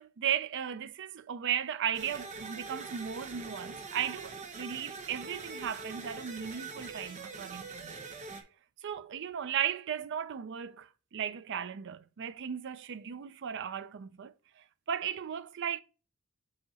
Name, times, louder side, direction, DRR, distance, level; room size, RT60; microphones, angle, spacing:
voice 1, 0.0-7.9 8.8-15.8, right 9 dB, 55° right, 0.4 m, -36 dB
sound 1, 1.9-8.4, right 3 dB, 35° right, 0.9 m, -43 dB
8.2 x 2.9 x 4.1 m
head